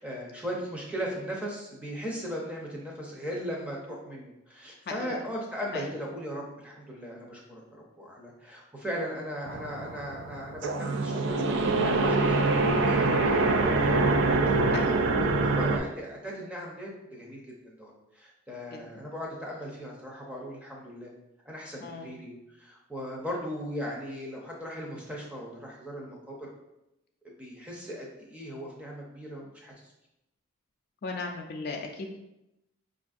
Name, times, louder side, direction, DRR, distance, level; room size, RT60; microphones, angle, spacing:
voice 1, 0.0-14.0 14.3-21.1 21.4-26.4 27.2-29.9, equal, 5° right, -2 dB, 0.6 m, -38 dB
sound 1, 9.4-15.8, right 3 dB, 55° right, 0.3 m, -25 dB
voice 2, 21.8-22.2 31.0-32.1, left 3 dB, 45° left, 2 dB, 0.3 m, -37 dB
5.2 x 2.6 x 2.4 m, 0.89 s
head